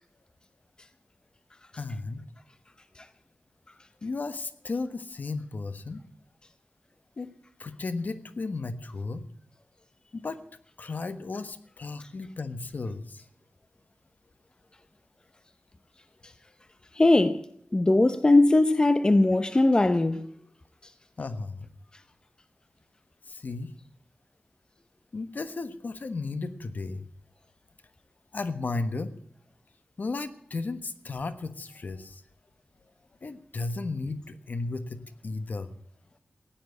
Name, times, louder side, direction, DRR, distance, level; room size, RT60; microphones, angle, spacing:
voice 1, 1.8-2.2 4.0-6.0 7.2-7.3 7.6-9.2 10.1-10.4 10.8-13.2 21.2-21.7 23.3-23.7 25.1-27.0 28.3-29.1 30.0-32.2 33.2-35.7, left 3 dB, 60° left, 1.3 m, -34 dB
voice 2, 17.0-17.4 17.7-20.3, left 2 dB, 25° left, 0.7 m, -20 dB
16.0 x 10.5 x 8.3 m
wide cardioid pair, 105°, 3 cm